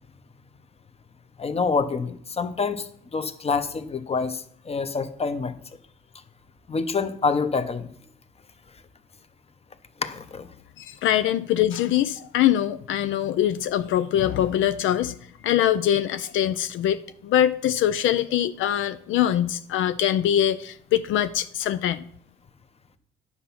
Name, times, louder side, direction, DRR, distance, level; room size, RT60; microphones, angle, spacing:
voice 1, 1.4-5.5 6.7-7.9 10.0-10.5, left 4 dB, 30° left, 1.0 m, -27 dB
voice 2, 10.8-15.2 15.4-22.0, left 11 dB, 80° left, 0.5 m, -23 dB
9.8 x 7.1 x 5.8 m
cardioid pair, 90°, 20 cm